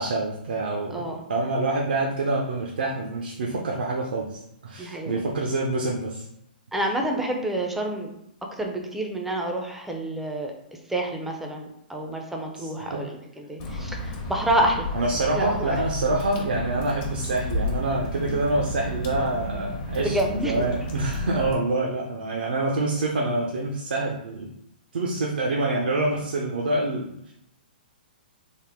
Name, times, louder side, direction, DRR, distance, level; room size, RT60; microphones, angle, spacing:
voice 1, 0.0-1.0 1.3-6.3 12.6-13.1 14.9-24.5 24.9-27.3, right 2 dB, 75° right, -1 dB, 0.5 m, -26 dB
voice 2, 0.9-1.2 4.8-5.1 6.7-8.1 8.6-10.5 10.9-14.9 15.1-15.8 20.0-20.6, right 1 dB, 5° right, 1 dB, 0.5 m, -28 dB
Water / Drip, 13.6-21.5, left 1 dB, 35° left, 0.8 m, -32 dB
3.5 x 2.1 x 3.5 m, 0.79 s
hypercardioid pair, 125°, 5 cm